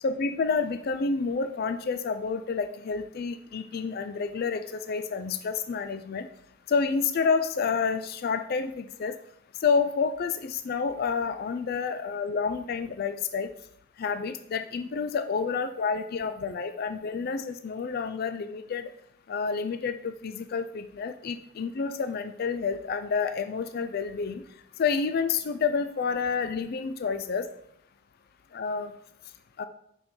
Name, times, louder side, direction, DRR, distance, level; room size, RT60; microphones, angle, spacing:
voice 1, 0.0-6.3 6.7-9.1 9.6-13.5 14.0-18.9 19.3-24.4 24.8-27.5 28.5-28.9 29.6-29.7, left 5 dB, 50° left, 9 dB, 0.4 m, -29 dB
5.4 x 5.4 x 4.5 m, 0.71 s
head